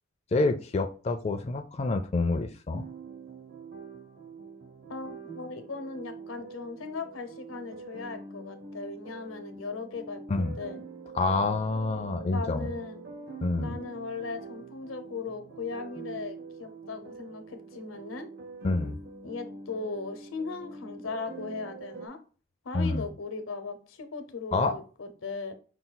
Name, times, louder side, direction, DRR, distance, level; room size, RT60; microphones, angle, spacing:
voice 1, 0.3-2.9 10.3-10.6 11.1-12.7 13.4-13.8 18.6-19.0 22.7-23.1 24.5-24.7, left 3 dB, 35° left, 0.4 m, -27 dB
sound 1, 2.7-22.1, right 4 dB, 55° right, 0.8 m, -45 dB
voice 2, 4.9-10.2 10.6-10.8 12.3-13.0 13.6-18.3 19.2-22.2 22.6-25.5, left 4 dB, 85° left, 0.8 m, -38 dB
5.5 x 2.3 x 3.9 m
head